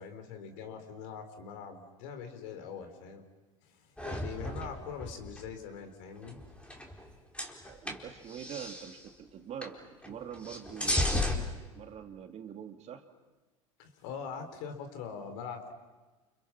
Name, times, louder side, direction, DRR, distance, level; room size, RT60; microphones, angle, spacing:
voice 1, 0.0-3.2 3.6-6.4 13.8-15.7, left 6 dB, 60° left, 7 dB, 4.1 m, -43 dB
sound 1, 4.0-5.5 6.2-7.1 7.3-9.0 9.6-9.8 10.0-11.4, left 1 dB, 5° left, 4.2 m, -34 dB
voice 2, 7.7-13.1, right 8 dB, 40° right, 6 dB, 2.4 m, -44 dB
30.0 x 29.5 x 6.0 m, 1.2 s
hypercardioid pair, 80°, 18 cm